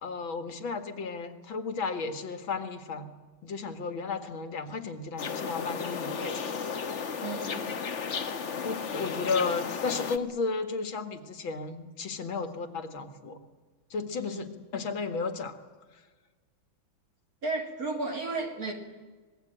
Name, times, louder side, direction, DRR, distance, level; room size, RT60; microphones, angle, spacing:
voice 1, 0.0-3.1 3.4-6.5 8.6-13.4 13.9-15.6, left 4 dB, 80° left, 8 dB, 2.6 m, -33 dB
sound 1, 5.2-10.2, left 6 dB, 45° left, 1.2 m, -34 dB
voice 2, 7.2-7.7 14.3-14.5 17.4-18.7, right 3 dB, 45° right, 3 dB, 3.8 m, -33 dB
26.0 x 20.5 x 9.0 m, 1.4 s
omnidirectional pair, 2.1 m